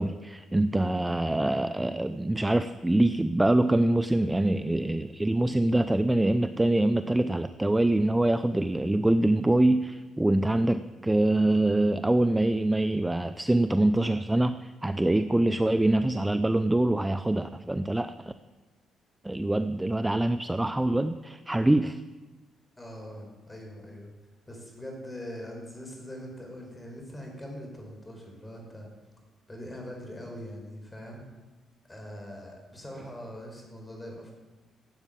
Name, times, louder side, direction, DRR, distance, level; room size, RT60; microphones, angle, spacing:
voice 1, 0.0-18.3 19.2-22.0, right 1 dB, 10° right, 11 dB, 0.5 m, -24 dB
voice 2, 22.8-24.1 24.5-28.9 29.5-31.2 31.9-34.3, equal, 15° left, 1 dB, 5.5 m, -42 dB
15.0 x 8.2 x 9.2 m, 1.2 s
cardioid pair, 90°, 0 cm